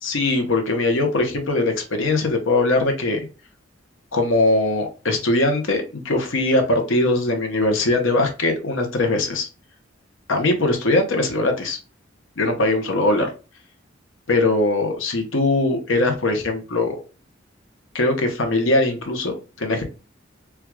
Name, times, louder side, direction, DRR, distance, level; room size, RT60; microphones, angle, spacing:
voice 1, 0.0-3.3 4.1-9.5 10.3-11.8 12.4-13.3 14.3-17.0 17.9-19.8, left 2 dB, 80° left, 5 dB, 0.8 m, -21 dB
4.5 x 2.4 x 2.2 m, 0.32 s
head